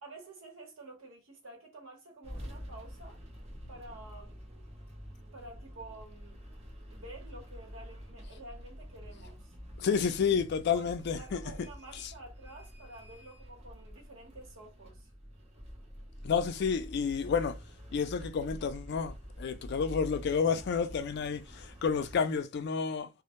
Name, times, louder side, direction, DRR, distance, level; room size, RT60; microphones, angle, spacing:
voice 1, 0.0-3.2 3.7-4.3 5.2-6.4 6.9-9.5 10.7-15.1, right 2 dB, 85° right, 1.0 m, -50 dB
sound 1, 2.2-22.2, equal, 35° right, 0.7 m, -47 dB
voice 2, 9.8-11.4 16.2-17.6 17.9-23.1, left 6 dB, 55° left, 0.3 m, -30 dB
2.1 x 2.0 x 2.9 m
head